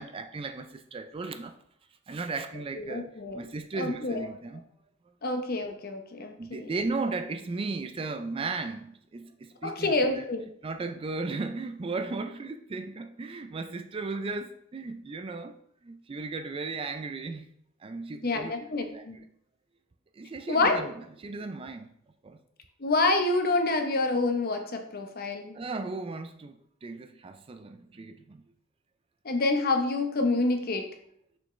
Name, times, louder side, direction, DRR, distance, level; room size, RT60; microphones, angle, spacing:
voice 1, 0.0-1.6 2.1-3.1 3.3-4.6 6.4-10.2 10.6-15.6 15.8-17.5 17.8-18.5 18.9-19.1 20.1-20.9 21.2-21.9 22.2-22.4 25.5-28.4, right 3 dB, 25° right, 0.3 m, -36 dB
voice 2, 2.8-3.4 3.8-4.3 5.2-6.7 9.6-10.4 18.2-19.2 20.5-20.9 22.8-25.6 29.2-30.9, left 2 dB, 45° left, 0.8 m, -27 dB
6.5 x 5.5 x 3.2 m
head